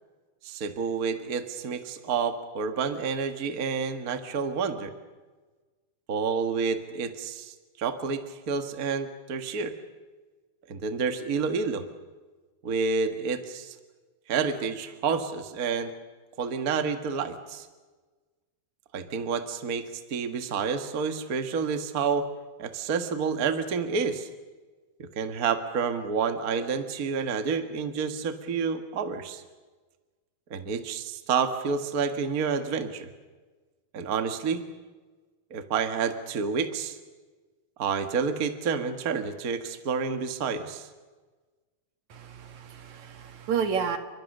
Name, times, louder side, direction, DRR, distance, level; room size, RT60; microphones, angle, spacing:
voice 1, 0.4-4.9 6.1-9.7 10.7-11.8 12.6-13.7 14.3-15.9 16.4-17.7 18.9-22.3 22.6-24.3 25.0-29.4 30.5-33.1 33.9-34.6 35.5-37.0 37.8-40.9, right 5 dB, 75° right, 8 dB, 0.8 m, -29 dB
voice 2, 42.1-44.0, right 7 dB, 55° right, 7 dB, 2.8 m, -31 dB
30.0 x 24.5 x 6.6 m, 1.3 s
omnidirectional pair, 4.5 m